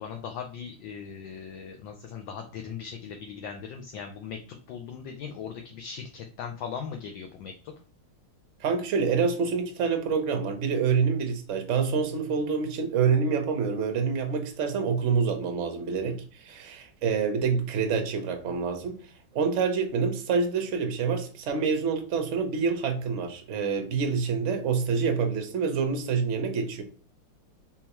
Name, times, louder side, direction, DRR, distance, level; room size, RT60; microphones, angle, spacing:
voice 1, 0.0-7.7, left 7 dB, 75° left, 1.3 m, -39 dB
voice 2, 8.6-19.0 19.3-26.8, right 5 dB, 60° right, 0.7 m, -27 dB
4.3 x 3.7 x 3.0 m
omnidirectional pair, 2.3 m